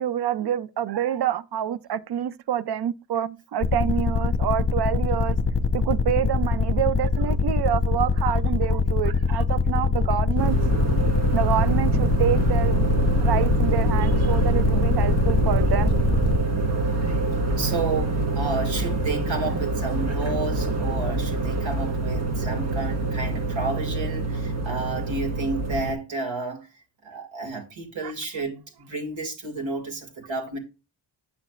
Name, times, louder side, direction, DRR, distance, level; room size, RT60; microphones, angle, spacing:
voice 1, 0.0-5.4 5.7-10.6 11.3-12.8 13.2-15.9 28.0-28.1, right 10 dB, 55° right, 0.5 m, -27 dB
sound 1, 3.6-16.4, left 4 dB, 30° left, 0.9 m, -23 dB
sound 2, 10.4-25.9, right 3 dB, 35° right, 1.5 m, -25 dB
voice 2, 17.6-26.7 27.0-30.6, right 3 dB, 70° right, 2.4 m, -31 dB
8.4 x 6.3 x 2.4 m
cardioid pair, 85°, 47 cm